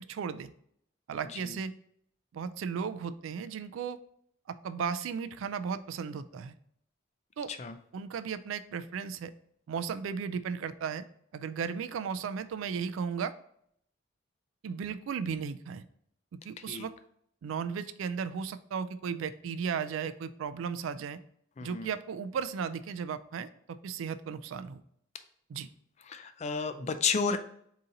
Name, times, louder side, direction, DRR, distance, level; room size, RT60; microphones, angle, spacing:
voice 1, 0.1-0.5 1.1-1.7 2.3-4.0 4.5-6.5 7.4-7.5 7.9-9.3 9.7-11.0 11.3-13.3 14.6-15.8 16.3-16.9 17.4-21.2 21.6-24.8 25.5-25.7, right 6 dB, 85° right, 12 dB, 0.3 m, -35 dB
voice 2, 21.6-21.9 26.1-27.4, left 5 dB, 35° left, 9 dB, 0.3 m, -31 dB
3.9 x 2.7 x 3.8 m, 0.68 s
head